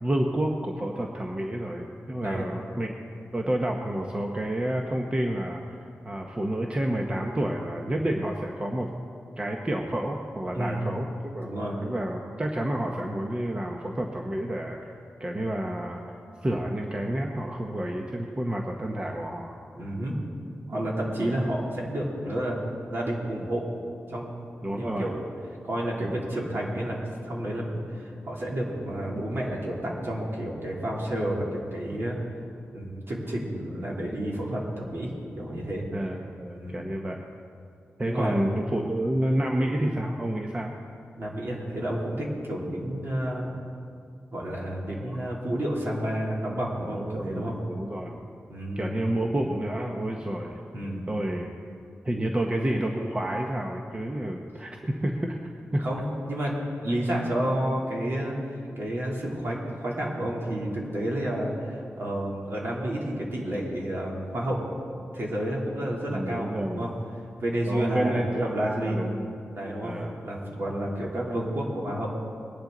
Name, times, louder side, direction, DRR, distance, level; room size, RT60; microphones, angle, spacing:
voice 1, 0.0-2.9 3.3-5.6 6.0-8.9 9.4-11.5 11.8-14.9 15.2-16.1 16.4-19.6 21.2-21.4 24.6-25.1 26.0-26.2 35.9-37.2 38.0-40.7 45.0-45.2 46.9-48.2 48.8-50.6 51.1-51.5 52.0-55.4 55.7-55.8 66.1-66.9 67.7-69.3 69.8-70.1 71.0-71.1, right 1 dB, 25° right, 1 dB, 1.0 m, -29 dB
voice 2, 10.5-10.8 11.4-11.8 19.7-20.2 20.7-22.6 22.9-23.7 24.1-24.3 24.8-25.2 25.6-27.0 27.2-32.2 32.7-35.1 35.4-35.9 36.5-36.8 38.0-38.4 41.2-43.5 44.3-47.5 48.5-48.9 50.7-51.1 55.8-64.7 65.1-66.9 67.4-69.0 69.5-72.1, right 1 dB, 55° right, -4 dB, 3.2 m, -30 dB
21.5 x 10.5 x 3.9 m, 2.4 s
wide cardioid pair, 105°, 5 cm